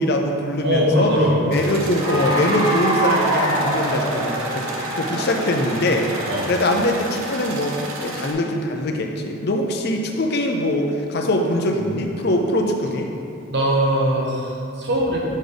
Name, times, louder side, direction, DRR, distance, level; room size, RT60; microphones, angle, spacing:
voice 1, 0.0-1.1 1.5-4.6 4.9-6.1 6.5-13.1, left 1 dB, 50° left, 3 dB, 0.6 m, -22 dB
voice 2, 0.6-1.5 6.3-6.5 13.5-15.2, equal, 55° right, -3 dB, 1.1 m, -20 dB
sound 1, 1.5-8.3, right 1 dB, 80° right, 0.8 m, -32 dB
Cheering / Applause, 1.9-7.0, right 1 dB, 20° right, 0.9 m, -25 dB
6.4 x 4.0 x 5.1 m, 2.6 s
head